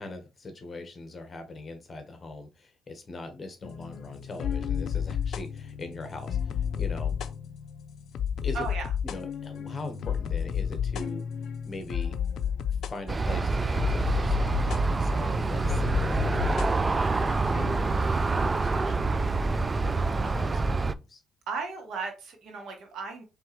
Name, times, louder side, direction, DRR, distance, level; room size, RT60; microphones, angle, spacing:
voice 1, 0.0-7.1 8.4-8.7 9.0-11.2 11.6-12.2 12.9-14.6 14.9-17.6 18.2-19.1 19.7-21.2, left 2 dB, 35° left, 7 dB, 1.3 m, -41 dB
sound 1, 3.6-19.9, left 8 dB, 70° left, 0.4 m, -32 dB
voice 2, 8.5-8.9 21.5-23.2, right 4 dB, 70° right, 3 dB, 1.6 m, -35 dB
Aircraft, 13.1-20.9, right 3 dB, 30° right, 0.3 m, -26 dB
4.5 x 3.4 x 3.2 m, 0.27 s
cardioid pair, 90°, 0 cm